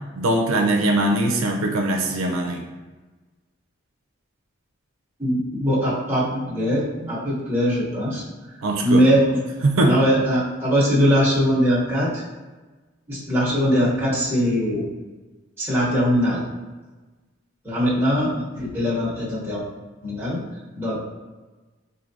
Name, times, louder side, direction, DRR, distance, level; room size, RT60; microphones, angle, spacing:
voice 1, 0.2-2.6 7.0-7.1 8.6-9.0 9.6-9.9, right 1 dB, 85° right, 2 dB, 0.5 m, -21 dB
voice 2, 5.2-8.2 8.8-9.4 9.8-12.2 13.1-14.9 15.6-16.4 17.6-19.6 20.0-20.4 20.7-21.0, equal, 10° right, -8 dB, 1.0 m, -21 dB
4.5 x 2.7 x 2.7 m, 1.2 s
head